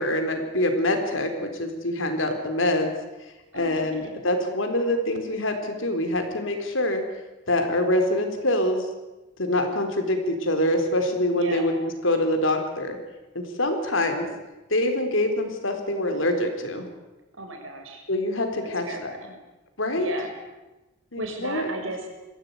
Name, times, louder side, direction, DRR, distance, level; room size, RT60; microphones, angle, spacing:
voice 1, 0.0-2.9 3.5-7.0 7.5-8.9 9.4-11.7 12.0-13.0 13.3-14.3 14.7-16.9 18.1-19.1 19.8-20.1 21.1-21.7, left 1 dB, 75° left, 6 dB, 4.0 m, -25 dB
voice 2, 3.5-4.2 11.3-11.7 17.4-18.0 18.9-19.4 19.9-20.3 21.2-22.1, right 2 dB, 85° right, 3 dB, 5.7 m, -35 dB
22.0 x 16.0 x 9.7 m, 1.1 s
head